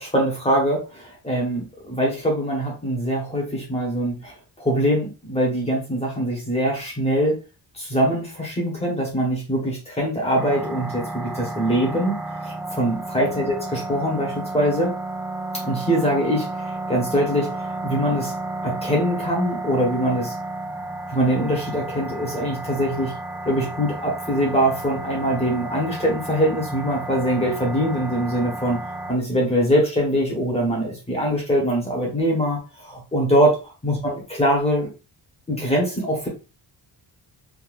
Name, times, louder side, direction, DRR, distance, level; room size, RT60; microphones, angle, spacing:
voice 1, 0.0-7.4 7.7-12.2 12.4-14.9 15.6-18.3 18.6-20.3 21.1-23.1 23.4-28.8 29.1-34.9 35.5-36.3, equal, 10° left, -2 dB, 1.2 m, -23 dB
sound 1, 10.3-29.1, right 2 dB, 5° right, 0.3 m, -32 dB
3.6 x 2.6 x 2.5 m, 0.31 s
wide cardioid pair, 180°, 49 cm